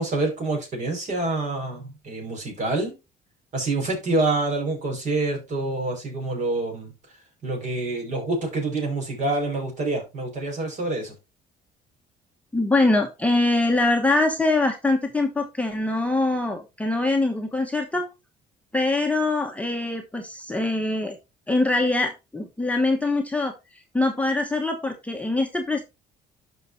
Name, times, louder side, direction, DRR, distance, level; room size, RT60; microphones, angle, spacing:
voice 1, 0.0-2.9 3.5-6.9 7.4-11.1, right 2 dB, 45° right, 2 dB, 5.1 m, -27 dB
voice 2, 12.5-18.1 18.7-21.2 21.5-23.5 23.9-25.8, left 2 dB, 10° left, 2 dB, 1.1 m, -23 dB
12.0 x 5.5 x 2.7 m, 0.25 s
cardioid pair, 110°, 17 cm